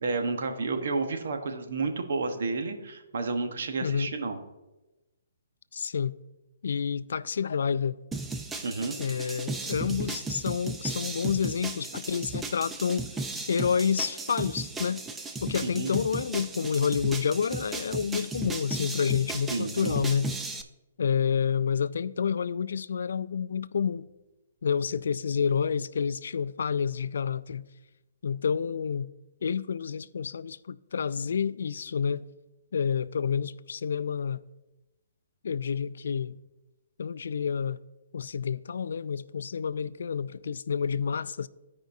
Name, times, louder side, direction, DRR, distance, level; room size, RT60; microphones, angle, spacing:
voice 1, 0.0-4.4 8.6-9.0 15.6-15.9 19.5-20.0, right 3 dB, 70° right, 1.1 m, -31 dB
voice 2, 3.8-4.1 5.7-6.1 6.6-8.0 9.0-13.0 13.5-15.0 15.4-20.3 21.0-24.1 24.6-27.7 28.2-29.1 29.4-32.3 32.7-34.4 35.4-36.4 37.0-37.8 38.1-41.5, left 6 dB, 75° left, 0.3 m, -29 dB
sound 1, 8.1-20.6, right 3 dB, 10° right, 0.4 m, -36 dB
15.0 x 5.1 x 2.7 m
hypercardioid pair, 155°, 0 cm